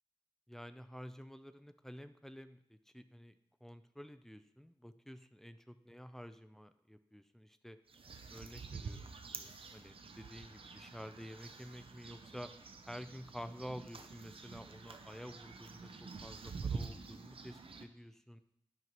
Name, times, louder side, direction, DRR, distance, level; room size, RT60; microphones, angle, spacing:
voice 1, 0.5-7.8 8.3-12.5 12.9-18.4, equal, 5° left, 11 dB, 0.5 m, -50 dB
sound 1, 7.9-17.8, right 4 dB, 90° right, 0.6 m, -47 dB
11.0 x 5.5 x 3.0 m, 0.77 s
wide cardioid pair, 65°, 9 cm